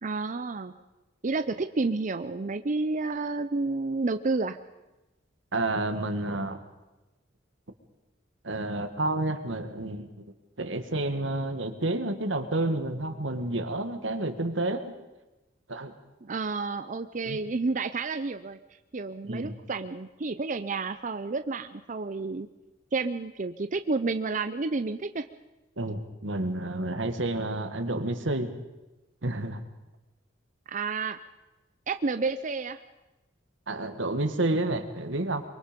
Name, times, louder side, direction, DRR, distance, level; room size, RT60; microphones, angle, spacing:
voice 1, 0.0-0.7 1.2-4.6 16.2-18.6 18.9-22.5 22.9-25.3 30.7-31.2 31.9-32.8, right 3 dB, 40° right, 9 dB, 0.6 m, -30 dB
voice 2, 5.5-6.6 8.4-10.2 10.6-14.9 15.7-15.9 17.2-17.4 19.3-19.6 25.8-28.5 29.2-29.6 33.7-35.4, right 2 dB, 85° right, 8 dB, 1.9 m, -30 dB
24.0 x 23.5 x 5.3 m, 1.0 s
head